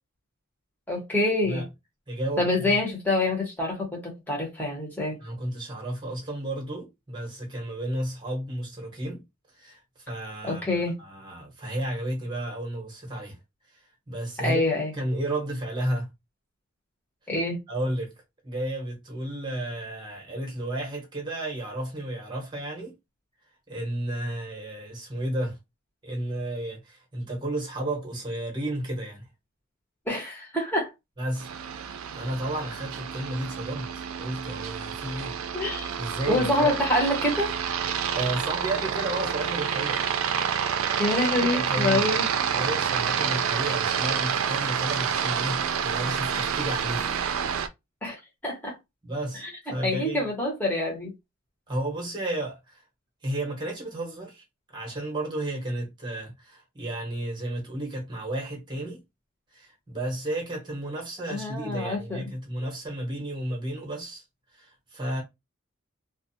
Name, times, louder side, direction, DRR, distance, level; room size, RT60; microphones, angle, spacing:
voice 1, 0.9-1.6 2.4-5.2 10.4-11.0 14.4-14.9 17.3-17.6 30.1-30.9 35.5-35.9 36.3-37.5 41.0-42.3 48.0-48.8 49.3-49.5 49.8-51.1 61.3-62.2, left 2 dB, 10° left, 1.1 m, -26 dB
voice 2, 2.1-2.8 5.2-9.2 9.6-9.8 10.1-13.4 14.1-14.6 14.9-16.1 17.7-18.1 18.4-22.9 23.7-25.6 26.0-29.3 31.2-31.5 31.7-35.4 36.0-36.7 38.1-40.0 41.4-42.2 42.5-47.1 49.0-49.4 49.7-50.2 51.7-52.8 53.2-54.4 54.7-59.0 59.5-64.2 64.5-65.2, right 1 dB, 20° right, 1.0 m, -32 dB
Aircraft, 31.4-47.7, right 7 dB, 85° right, 0.4 m, -28 dB
2.4 x 2.3 x 2.6 m
head